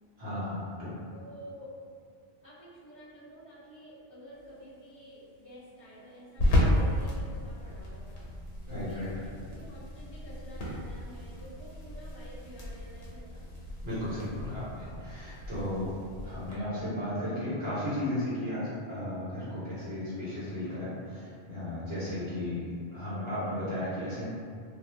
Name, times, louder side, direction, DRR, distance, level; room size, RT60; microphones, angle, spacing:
voice 1, 0.2-1.0 8.7-9.3 13.8-15.9 16.2-24.3, left 1 dB, 65° right, -11 dB, 1.3 m, -35 dB
voice 2, 1.1-1.8 2.4-8.2 8.6-13.4, equal, 30° right, -17 dB, 0.9 m, -50 dB
sound 1, 4.3-16.5, left 1 dB, 85° left, 1.0 m, -34 dB
2.5 x 2.3 x 3.2 m, 2.3 s
omnidirectional pair, 1.1 m